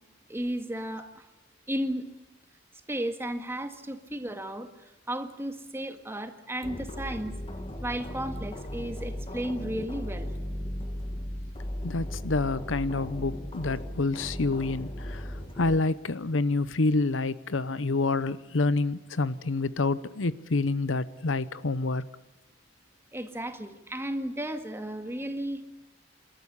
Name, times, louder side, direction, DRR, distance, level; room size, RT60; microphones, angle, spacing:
voice 1, 0.3-1.2 1.7-2.0 2.9-4.7 5.1-7.3 7.8-10.3 23.1-25.6, right 1 dB, 15° right, 1.8 m, -34 dB
sound 1, 6.6-15.8, equal, 30° left, 1.9 m, -36 dB
voice 2, 11.8-22.0, left 3 dB, 80° left, 0.8 m, -28 dB
28.0 x 13.0 x 9.9 m
head